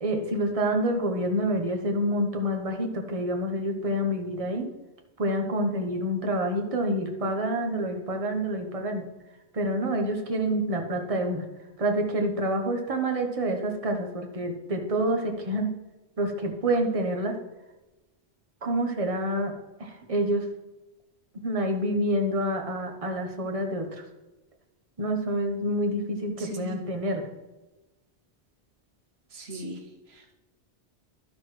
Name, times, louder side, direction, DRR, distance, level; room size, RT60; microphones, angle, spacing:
voice 1, 0.0-4.7 5.2-9.0 9.5-11.4 11.8-15.7 16.2-17.3 18.6-19.5 19.8-20.4 21.4-24.0 25.0-27.2 29.5-29.6, right 1 dB, 35° right, 3 dB, 1.1 m, -27 dB
voice 2, 26.4-26.9 29.3-30.3, equal, 75° right, 4 dB, 1.1 m, -39 dB
12.0 x 6.4 x 3.2 m, 1.1 s
omnidirectional pair, 1.1 m